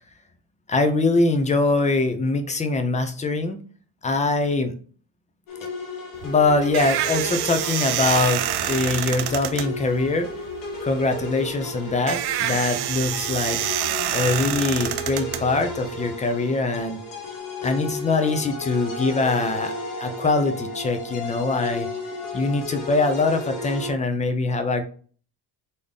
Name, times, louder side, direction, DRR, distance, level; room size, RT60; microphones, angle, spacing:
voice 1, 0.7-3.6 4.0-4.7 6.2-8.4 8.7-10.3 10.8-13.8 14.1-17.0 17.6-19.7 20.0-21.9 22.3-24.8, left 3 dB, 15° left, 7 dB, 0.5 m, -23 dB
sound 1, 5.5-23.9, left 2 dB, 50° left, 1.3 m, -34 dB
sound 2, 6.1-16.1, right 11 dB, 65° right, 0.6 m, -27 dB
4.1 x 3.6 x 3.4 m, 0.42 s
cardioid pair, 155°, 43 cm